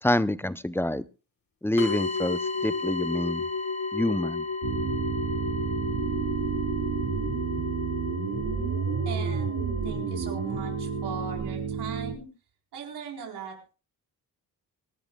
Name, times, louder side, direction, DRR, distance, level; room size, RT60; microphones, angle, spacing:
voice 1, 0.0-1.0 1.6-3.4 3.9-4.4, left 1 dB, 5° left, 15 dB, 0.6 m, -27 dB
sound 1, 1.8-11.4, left 4 dB, 60° left, 5.9 m, -33 dB
sound 2, 4.6-12.2, right 7 dB, 70° right, 2.4 m, -30 dB
voice 2, 9.0-9.6 9.8-12.3 12.7-13.6, right 6 dB, 85° right, 1 dB, 4.3 m, -39 dB
25.5 x 11.5 x 2.3 m, 0.33 s
cardioid pair, 90°, 39 cm